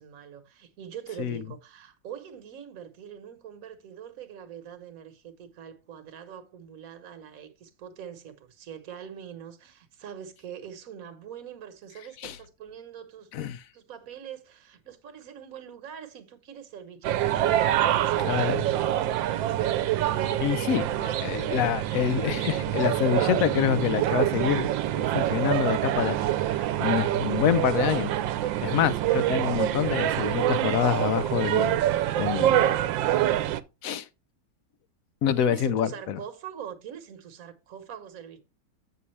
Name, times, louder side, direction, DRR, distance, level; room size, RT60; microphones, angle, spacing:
voice 1, 0.0-17.4 17.8-19.6 35.4-38.4, right 9 dB, 55° right, 1.4 m, -43 dB
sound 1, 17.0-33.6, right 12 dB, 90° right, 1.3 m, -26 dB
voice 2, 18.3-18.6 20.4-26.2 26.4-28.1 28.6-31.8 32.2-32.7 33.8-34.1 35.2-36.2, left 9 dB, 70° left, 0.8 m, -27 dB
8.5 x 7.0 x 3.2 m
omnidirectional pair, 2.0 m